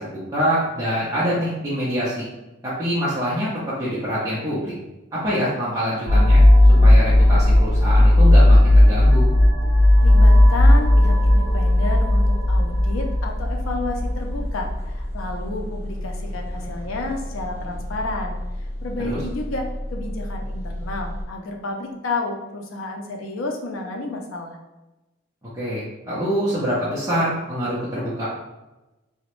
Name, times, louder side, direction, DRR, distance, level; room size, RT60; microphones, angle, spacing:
voice 1, 0.0-2.3 2.6-4.7 5.1-6.4 6.8-9.3 19.0-19.2 25.5-28.3, equal, 15° right, -10 dB, 0.5 m, -25 dB
sound 1, 6.1-14.7, left 1 dB, 55° right, 0.7 m, -14 dB
voice 2, 10.0-24.6, left 2 dB, 85° left, 2 dB, 0.5 m, -31 dB
sound 2, 10.0-21.2, left 1 dB, 35° left, 1.2 m, -32 dB
2.9 x 2.1 x 3.0 m, 1.0 s
head